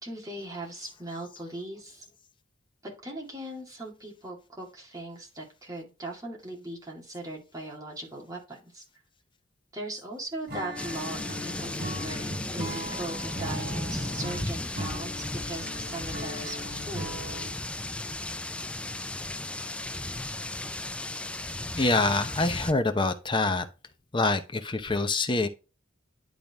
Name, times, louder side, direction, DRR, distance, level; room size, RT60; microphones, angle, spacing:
voice 1, 0.0-2.0 2.8-8.8 9.7-17.2, right 1 dB, 20° right, 2.2 m, -39 dB
Acoustic guitar / Strum, 10.5-17.7, equal, 55° right, 3.3 m, -39 dB
sound 1, 10.8-22.7, left 2 dB, 5° left, 0.3 m, -35 dB
voice 2, 21.8-23.7 24.1-25.5, left 2 dB, 25° left, 0.8 m, -25 dB
10.5 x 3.9 x 3.5 m
head